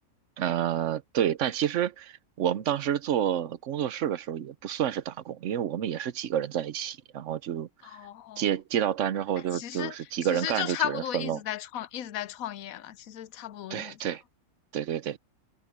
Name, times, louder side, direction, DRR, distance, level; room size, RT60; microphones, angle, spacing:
voice 1, 0.4-8.0 8.4-11.4 13.7-14.2 14.7-15.2, right 10 dB, 60° right, 1.0 m, -29 dB
voice 2, 7.8-8.5 9.4-14.2, left 11 dB, 75° left, 1.1 m, -35 dB
omnidirectional pair, 1.5 m